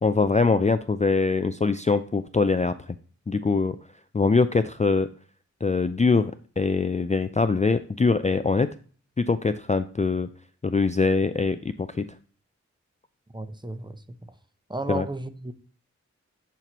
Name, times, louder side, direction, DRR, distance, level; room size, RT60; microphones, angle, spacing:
voice 1, 0.0-2.7 3.3-3.8 4.1-5.1 5.6-8.7 9.2-10.3 10.6-12.1 14.9-15.1, left 4 dB, 25° left, 10 dB, 0.4 m, -23 dB
voice 2, 13.3-14.2 14.7-15.5, right 2 dB, 15° right, 10 dB, 0.7 m, -33 dB
10.5 x 4.5 x 3.0 m, 0.41 s
wide cardioid pair, 45°, 30 cm